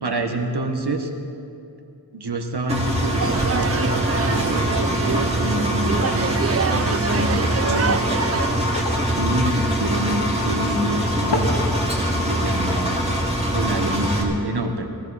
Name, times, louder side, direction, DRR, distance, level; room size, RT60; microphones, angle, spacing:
voice 1, 0.0-1.1 2.1-8.2 9.2-11.5 12.1-13.0 13.5-14.9, right 1 dB, 75° right, 4 dB, 1.5 m, -27 dB
Engine, 2.7-14.2, equal, 15° right, 2.5 m, -23 dB
sound 1, 3.2-8.8, right 6 dB, 40° right, 0.4 m, -26 dB
sound 2, 3.5-14.3, left 1 dB, 85° left, 2.3 m, -36 dB
19.5 x 17.0 x 4.2 m, 2.7 s
wide cardioid pair, 55°, 40 cm